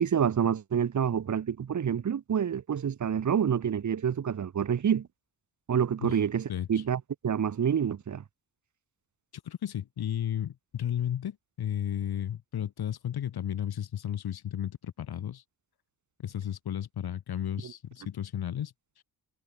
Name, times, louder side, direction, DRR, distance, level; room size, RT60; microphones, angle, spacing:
voice 1, 0.0-5.1 5.7-8.2, right 8 dB, 50° right, 1.3 m, -27 dB
voice 2, 6.5-6.8 9.4-15.4 16.2-19.0, left 10 dB, 75° left, 1.6 m, -34 dB
wide cardioid pair, 160°, 38 cm